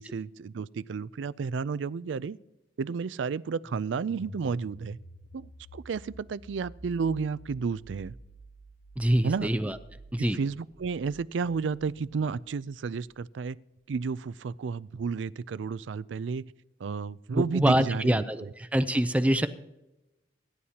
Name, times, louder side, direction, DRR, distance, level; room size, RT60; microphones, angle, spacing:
voice 1, 0.0-2.4 2.8-5.0 5.3-8.1 9.2-9.5 10.2-13.6 13.9-16.4 16.8-18.5, right 5 dB, 85° right, 0.4 m, -32 dB
sound 1, 3.6-12.3, equal, 80° left, 3.2 m, -50 dB
voice 2, 9.0-9.8 10.1-10.4 17.3-19.5, equal, 10° right, 0.5 m, -25 dB
25.5 x 11.0 x 2.9 m
head